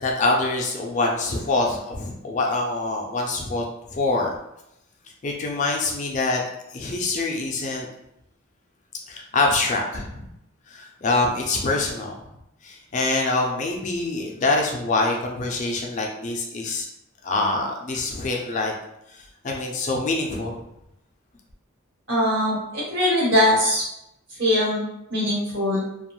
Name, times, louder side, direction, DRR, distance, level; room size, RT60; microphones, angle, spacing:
voice 1, 0.0-3.6 3.9-4.3 5.2-6.4 6.7-7.9 9.1-10.2 10.7-12.2 12.6-16.9 17.2-18.7 19.1-20.6, left 2 dB, 35° left, 0 dB, 0.4 m, -25 dB
voice 2, 22.1-23.8 24.4-25.8, left 1 dB, 65° right, -6 dB, 1.2 m, -21 dB
2.5 x 2.2 x 3.0 m, 0.82 s
head